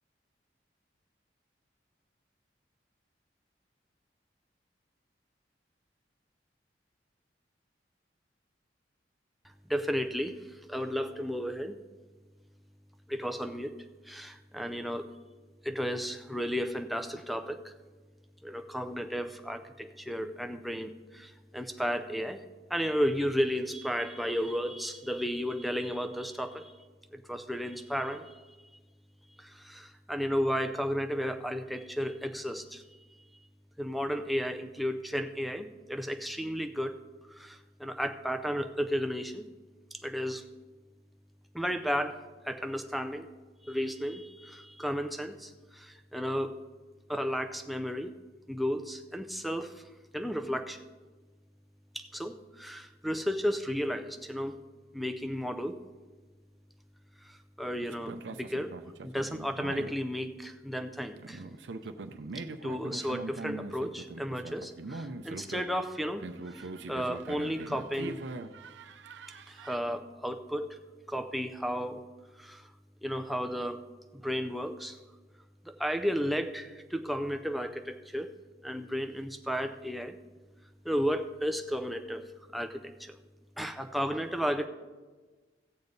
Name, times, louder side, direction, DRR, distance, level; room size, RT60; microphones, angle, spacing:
voice 1, 9.7-10.3 10.7-11.8 13.1-13.8 14.1-15.1 15.6-17.7 18.4-22.4 22.7-26.7 27.1-28.3 29.4-32.8 33.8-37.0 37.4-39.5 40.0-40.4 41.5-42.2 42.5-43.3 43.7-46.5 47.1-48.1 48.5-49.8 50.1-50.8 51.9-54.6 54.9-55.8 57.6-58.7 59.0-61.4 62.6-66.3 66.6-68.2 69.5-70.8 71.1-72.0 72.4-72.6 73.0-73.8 74.1-75.0 75.7-78.3 78.6-80.2 80.8-83.1 83.6-84.7, equal, ahead, 6 dB, 0.5 m, -33 dB
sound 1, 57.8-60.0 61.2-69.8, right 3 dB, 75° right, 0.6 m, -42 dB
16.5 x 7.0 x 4.0 m, 1.3 s
head